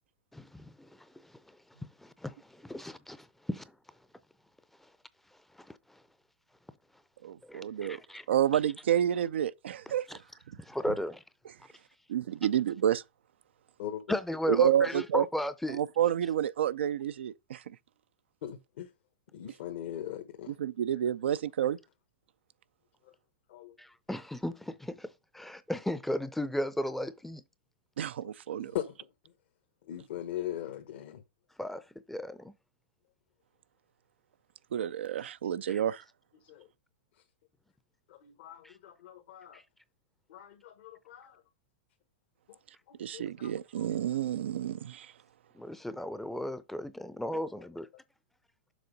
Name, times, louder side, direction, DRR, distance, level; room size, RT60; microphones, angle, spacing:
voice 1, 0.3-0.9 2.0-3.6 5.6-5.7 7.5-8.2 10.1-10.2 10.7-11.2 14.1-15.8 23.8-27.4 31.6-31.8 32.1-32.5 35.7-35.8 38.6-38.7 39.5-39.6 45.6-47.8, left 1 dB, 5° left, 0.5 m, -35 dB
voice 2, 7.2-8.0 8.3-10.0 10.9-11.0 12.1-13.0 14.5-15.2 15.7-17.6 20.5-21.8 28.0-28.7 34.7-36.0 43.0-45.1, right 10 dB, 80° right, 0.4 m, -29 dB
voice 3, 18.4-18.9 19.3-20.5 23.5-23.7 28.5-28.9 29.9-31.2 36.5-36.7 38.2-39.6 40.3-41.4 42.5-42.6 42.9-43.5 43.8-43.9, left 11 dB, 65° left, 1.2 m, -40 dB
7.0 x 3.8 x 5.2 m
hypercardioid pair, 125°, 6 cm